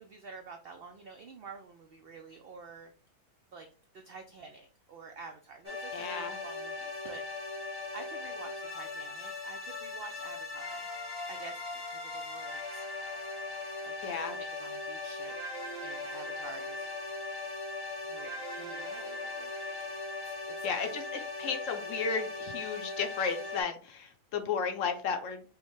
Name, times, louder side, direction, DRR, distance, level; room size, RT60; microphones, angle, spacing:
voice 1, 0.0-2.9 3.5-3.7 3.9-7.2 7.9-10.9 11.3-12.8 13.8-15.5 15.8-16.9 18.1-19.9 20.2-21.3, right 4 dB, 80° right, 5 dB, 0.5 m, -49 dB
sound 1, 5.6-23.6, left 3 dB, 20° left, 0.8 m, -39 dB
voice 2, 5.9-6.4 14.0-14.4 20.6-21.1 21.4-25.4, left 6 dB, 65° left, 5 dB, 0.9 m, -33 dB
4.9 x 2.1 x 3.0 m, 0.37 s
omnidirectional pair, 1.5 m